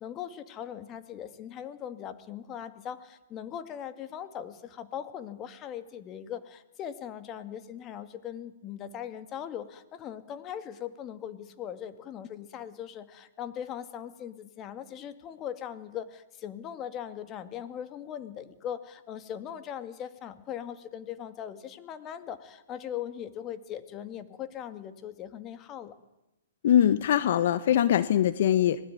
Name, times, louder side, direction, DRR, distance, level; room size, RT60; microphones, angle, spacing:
voice 1, 0.0-25.9, left 9 dB, 25° left, 11 dB, 2.3 m, -40 dB
voice 2, 26.6-28.8, left 10 dB, 60° left, 14 dB, 1.1 m, -22 dB
26.0 x 20.0 x 9.4 m, 0.95 s
hypercardioid pair, 130°, 0 cm